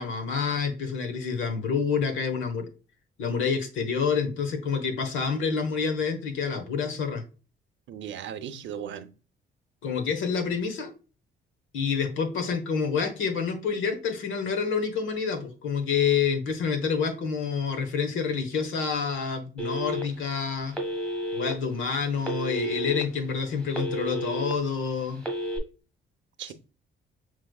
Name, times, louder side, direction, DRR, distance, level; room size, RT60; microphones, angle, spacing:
voice 1, 0.0-2.7 3.2-7.2 9.8-10.9 11.7-20.8 21.3-25.2 26.5-26.6, left 5 dB, 80° left, 1.0 m, -28 dB
voice 2, 7.9-9.1 26.4-26.5, right 9 dB, 70° right, 0.6 m, -37 dB
Telephone, 19.6-20.3 20.7-21.5 22.2-23.0 23.4-24.5 25.2-25.6, equal, 5° left, 1.4 m, -31 dB
6.0 x 3.1 x 2.3 m
cardioid pair, 90°, 20 cm